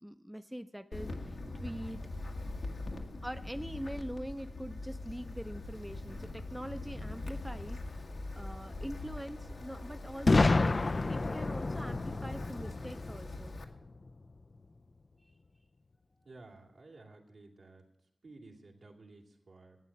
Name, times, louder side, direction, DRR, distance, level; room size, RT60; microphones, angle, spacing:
voice 1, 0.0-2.0 3.2-7.8 8.3-10.7 11.1-13.5, equal, 5° right, 9 dB, 0.7 m, -43 dB
Wind, 0.9-13.6, left 2 dB, 80° left, 1.6 m, -42 dB
Boom, 10.3-14.1, left 3 dB, 50° left, 0.4 m, -29 dB
voice 2, 16.2-17.8 18.2-19.8, right 2 dB, 75° right, 1 dB, 2.6 m, -54 dB
12.5 x 8.9 x 8.4 m, 0.79 s
wide cardioid pair, 60°, 0 cm